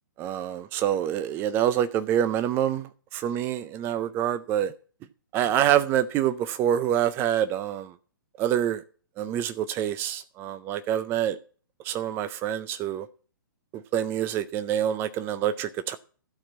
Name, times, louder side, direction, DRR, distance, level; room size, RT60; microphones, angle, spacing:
voice 1, 0.2-4.7 5.3-7.9 8.4-8.8 9.2-11.4 11.8-13.1 13.9-16.0, right 10 dB, 20° right, 0.5 m, -26 dB
13.0 x 4.4 x 8.4 m
figure-of-eight pair, 120°, 11 cm